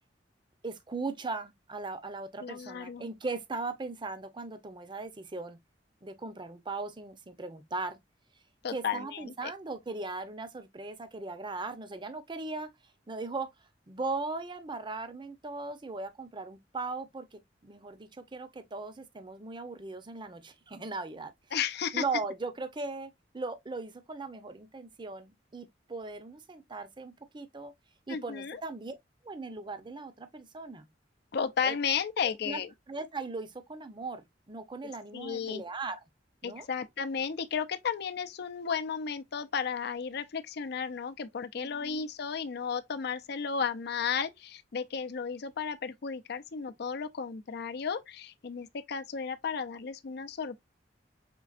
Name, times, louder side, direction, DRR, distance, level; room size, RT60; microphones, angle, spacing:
voice 1, 0.6-5.6 6.0-8.0 8.7-12.7 13.1-13.5 13.9-21.3 21.9-27.7 28.1-29.0 29.2-30.9 31.6-31.7 32.4-32.6 32.9-36.0 36.4-36.7 41.5-42.0, right 3 dB, 25° right, 0.6 m, -38 dB
voice 2, 2.4-3.0 8.6-9.5 21.5-22.0 28.1-28.6 31.3-32.7 35.1-35.6 36.4-50.7, left 6 dB, 60° left, 0.5 m, -34 dB
5.3 x 3.3 x 2.4 m
head